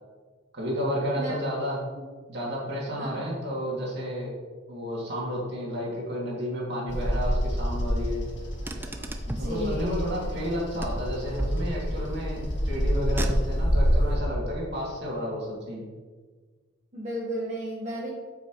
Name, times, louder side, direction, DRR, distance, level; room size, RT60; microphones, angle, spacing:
voice 1, 0.5-1.8 2.3-4.3 4.7-8.2 9.4-15.8, equal, 55° right, -4 dB, 2.3 m, -31 dB
Bird vocalization bird call bird song, 6.9-14.1, equal, 55° left, 1.7 m, -28 dB
Car, 8.3-9.6 10.8-12.1 13.0-13.8, right 1 dB, 10° right, 0.4 m, -34 dB
voice 2, 9.3-10.1 16.9-18.1, equal, 35° right, -7 dB, 1.3 m, -33 dB
8.5 x 6.0 x 3.0 m, 1.4 s
head